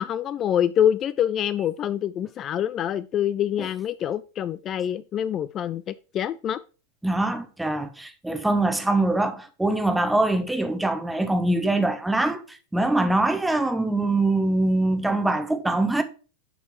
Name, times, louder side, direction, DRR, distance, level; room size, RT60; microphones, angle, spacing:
voice 1, 0.0-6.6, left 10 dB, 30° left, 0.3 m, -25 dB
voice 2, 7.0-16.0, right 2 dB, 5° right, 1.0 m, -23 dB
9.9 x 4.4 x 4.6 m
figure-of-eight pair, 90°, 0 cm